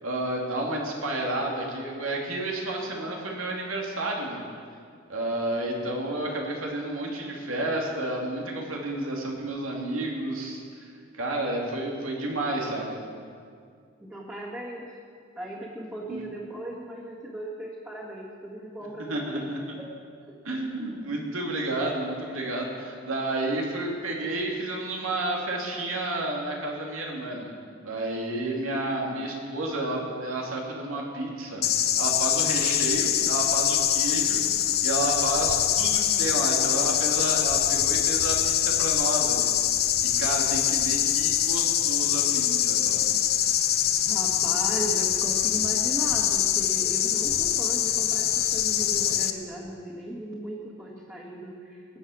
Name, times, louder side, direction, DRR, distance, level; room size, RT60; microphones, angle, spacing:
voice 1, 0.0-4.4 5.1-10.6 11.1-13.0 16.1-16.2 19.1-19.6 20.4-27.5 27.8-34.4 34.8-39.5 40.0-43.0, right 1 dB, 90° right, -1 dB, 2.5 m, -31 dB
voice 2, 14.0-14.9 15.4-19.5 19.8-19.9 20.2-20.3 20.8-20.9 44.0-52.0, right 1 dB, 10° right, -8 dB, 1.9 m, -37 dB
sound 1, 31.6-49.3, left 11 dB, 50° left, 0.7 m, -24 dB
20.0 x 8.0 x 6.4 m, 2.2 s
head